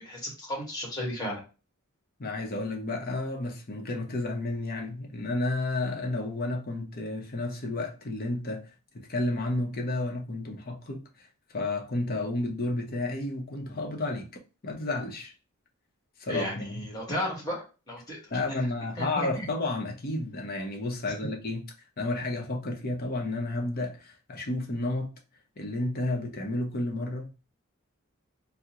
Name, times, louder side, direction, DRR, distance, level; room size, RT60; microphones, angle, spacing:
voice 1, 0.0-1.4 16.3-18.2 19.0-19.5, equal, 15° left, 1.2 m, -34 dB
voice 2, 2.2-11.3 11.5-14.3 14.6-15.3 16.2-16.9 18.3-21.6 22.0-25.1 25.6-27.3, left 2 dB, 45° left, 0.6 m, -31 dB
3.6 x 2.0 x 2.8 m
head